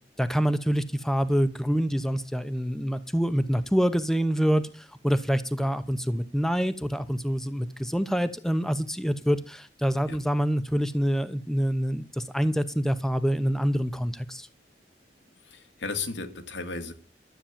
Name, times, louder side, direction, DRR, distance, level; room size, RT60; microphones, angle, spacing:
voice 1, 0.2-14.5, equal, 5° left, 0.9 m, -26 dB
voice 2, 15.4-16.9, left 4 dB, 90° left, 2.2 m, -34 dB
13.0 x 8.4 x 7.4 m
head